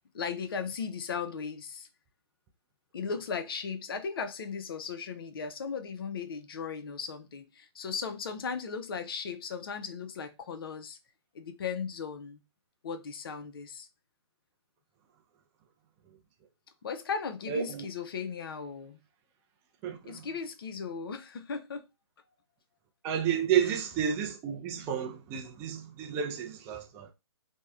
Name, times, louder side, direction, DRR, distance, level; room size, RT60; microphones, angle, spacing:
voice 1, 0.1-1.9 2.9-11.0 11.3-12.4 12.8-13.9 16.8-19.0 20.0-21.8, left 6 dB, 55° left, 0.4 m, -37 dB
voice 2, 17.5-17.8 19.8-20.2 23.0-27.1, right 8 dB, 15° right, 0.3 m, -31 dB
2.6 x 2.0 x 2.3 m
figure-of-eight pair, 135°, 14 cm